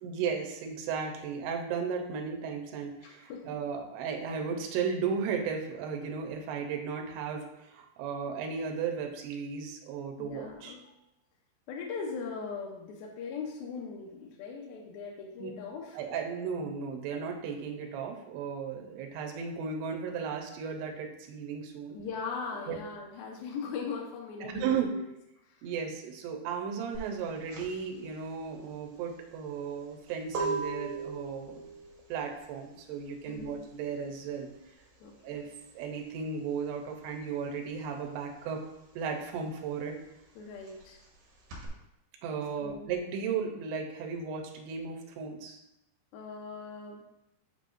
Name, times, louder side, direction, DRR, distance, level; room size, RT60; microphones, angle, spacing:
voice 1, 0.0-10.7 15.4-15.5 15.9-22.0 22.7-22.8 24.4-24.9 25.6-31.7 32.1-34.5 35.2-38.6 39.0-40.0 42.2-45.6, right 6 dB, 85° right, 3 dB, 2.8 m, -35 dB
voice 2, 3.0-3.4 10.2-10.8 11.7-16.0 21.9-25.1 25.4-25.6 33.3-33.6 35.0-35.4 40.4-41.0 42.6-42.9 46.1-47.0, left 5 dB, 80° left, -1 dB, 2.4 m, -40 dB
sound 1, 26.9-37.2 37.5-41.7, right 4 dB, 70° right, 3.0 m, -40 dB
7.6 x 5.2 x 2.6 m, 0.88 s
omnidirectional pair, 4.6 m